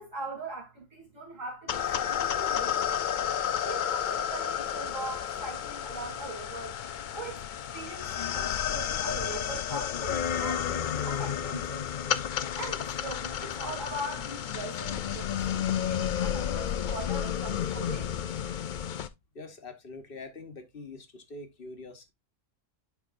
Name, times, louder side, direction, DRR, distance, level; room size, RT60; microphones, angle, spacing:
voice 1, 0.0-3.1 3.6-6.8 7.1-7.4 7.7-11.9 12.5-18.1, right 2 dB, 70° right, 3.4 m, -41 dB
sound 1, 1.7-19.1, left 9 dB, 65° left, 0.5 m, -31 dB
voice 2, 19.3-22.1, left 3 dB, 45° left, 1.3 m, -44 dB
11.0 x 4.5 x 2.5 m
omnidirectional pair, 1.4 m